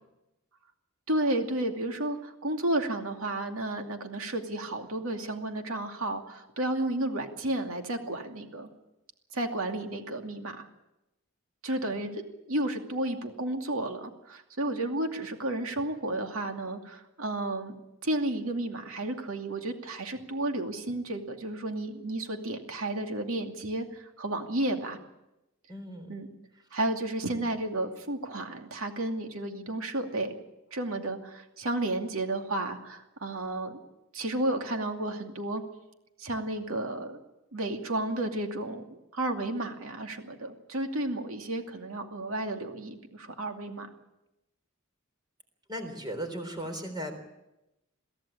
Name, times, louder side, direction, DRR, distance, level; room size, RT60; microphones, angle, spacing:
voice 1, 1.1-8.7 9.3-10.7 11.6-12.2 12.5-17.8 18.0-25.0 26.1-26.3 26.7-30.3 30.7-33.8 34.1-35.6 36.2-37.2 37.5-43.9, right 1 dB, 70° right, 4 dB, 2.5 m, -32 dB
voice 2, 25.7-26.3 45.7-47.2, equal, 20° right, 6 dB, 3.6 m, -37 dB
23.0 x 15.5 x 8.7 m, 0.93 s
head